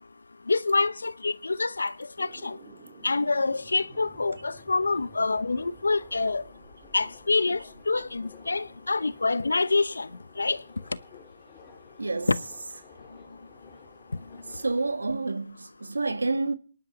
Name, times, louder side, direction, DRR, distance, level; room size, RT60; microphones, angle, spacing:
voice 1, 0.5-2.6 3.0-6.4 6.9-10.1 10.4-10.6 12.3-12.4, left 3 dB, 75° left, 0.8 m, -26 dB
sound 1, 2.2-8.2, right 4 dB, 30° right, 3.2 m, -54 dB
Subway metro underground, 3.6-14.9, left 6 dB, 20° left, 3.7 m, -53 dB
voice 2, 12.0-12.3 14.5-16.5, right 3 dB, 80° right, 1.6 m, -29 dB
25.5 x 11.0 x 4.0 m
figure-of-eight pair, 145°, 0 cm